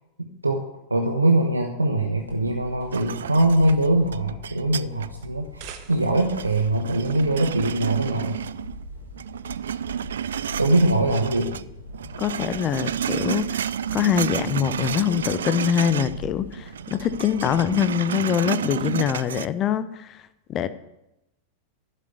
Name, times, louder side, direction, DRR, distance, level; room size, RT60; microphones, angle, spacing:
voice 1, 0.9-8.4 10.6-11.6, right 1 dB, 80° right, 3 dB, 1.1 m, -22 dB
sound 1, 2.2-18.0, left 1 dB, 65° left, 3.2 m, -43 dB
sound 2, 2.9-5.2 5.6-8.9 9.2-11.7 11.9-16.2 16.5-19.5, right 9 dB, 65° right, 0.3 m, -31 dB
sound 3, 5.3-6.4, right 9 dB, 45° right, 1.3 m, -44 dB
voice 2, 12.2-20.2 20.5-20.7, left 9 dB, 30° left, 14 dB, 0.7 m, -24 dB
11.5 x 6.8 x 8.0 m, 0.89 s
figure-of-eight pair, 90°, 0 cm